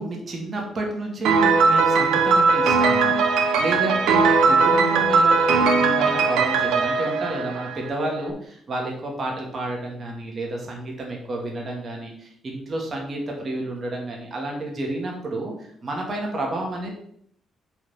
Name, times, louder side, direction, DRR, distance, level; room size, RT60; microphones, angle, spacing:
voice 1, 0.0-16.9, right 2 dB, 45° right, 0 dB, 2.3 m, -30 dB
Piano, 1.2-8.1, right 4 dB, 85° right, 1.0 m, -19 dB
7.0 x 4.3 x 5.7 m, 0.68 s
cardioid pair, 90°, 0 cm